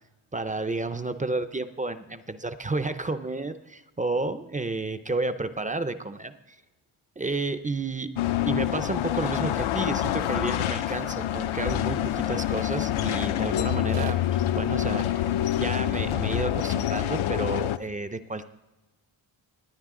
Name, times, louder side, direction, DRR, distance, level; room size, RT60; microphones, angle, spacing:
voice 1, 0.3-6.3 7.2-8.1 8.5-15.3 15.6-18.5, right 3 dB, 20° right, 11 dB, 0.3 m, -31 dB
sound 1, 8.2-17.8, left 12 dB, 80° left, 0.6 m, -26 dB
sound 2, 10.2-16.2, right 7 dB, 85° right, 1.4 m, -47 dB
19.5 x 9.6 x 3.6 m, 1.1 s
wide cardioid pair, 165°, 48 cm